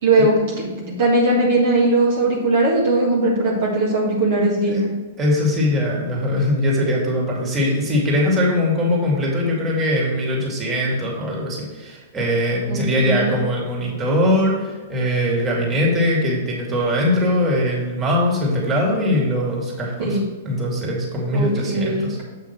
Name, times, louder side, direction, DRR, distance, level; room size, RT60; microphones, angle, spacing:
voice 1, 0.0-0.3 0.9-4.9 12.7-13.3 20.0-20.2 21.3-22.2, right 2 dB, 55° right, -4 dB, 1.9 m, -19 dB
voice 2, 5.2-20.2 20.4-22.2, left 1 dB, 25° right, -2 dB, 2.6 m, -21 dB
7.9 x 5.7 x 4.5 m, 1.4 s
figure-of-eight pair, 110°, 0 cm